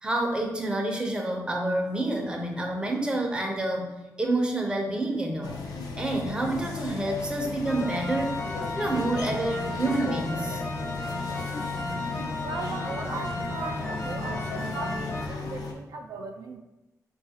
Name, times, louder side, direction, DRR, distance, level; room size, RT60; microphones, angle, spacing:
voice 1, 0.0-5.6 6.0-8.4 8.7-10.6, right 2 dB, 15° right, 1 dB, 0.5 m, -28 dB
sound 1, 5.4-15.7, left 4 dB, 85° left, 0.5 m, -36 dB
sound 2, 7.6-15.3, left 1 dB, 40° left, 0.6 m, -34 dB
voice 2, 12.4-16.6, right 4 dB, 90° right, 3 dB, 0.3 m, -38 dB
4.7 x 2.3 x 2.7 m, 1.0 s
wide cardioid pair, 135°, 6 cm